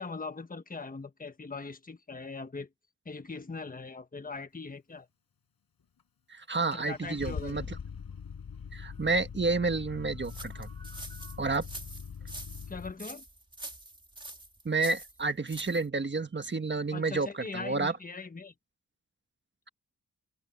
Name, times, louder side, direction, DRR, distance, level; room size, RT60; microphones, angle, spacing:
voice 1, 0.0-2.7 3.0-5.1 6.7-7.7 12.7-13.2 16.9-18.5, left 4 dB, 25° left, 1.3 m, -40 dB
Car / Engine starting, 6.0-6.1 6.7-12.9, left 6 dB, 90° left, 6.3 m, -42 dB
voice 2, 6.3-7.6 8.7-11.7 14.6-17.9, right 3 dB, 30° right, 1.4 m, -30 dB
sound 1, 10.2-15.9, right 1 dB, 15° right, 2.0 m, -45 dB
wide cardioid pair, 130°, 34 cm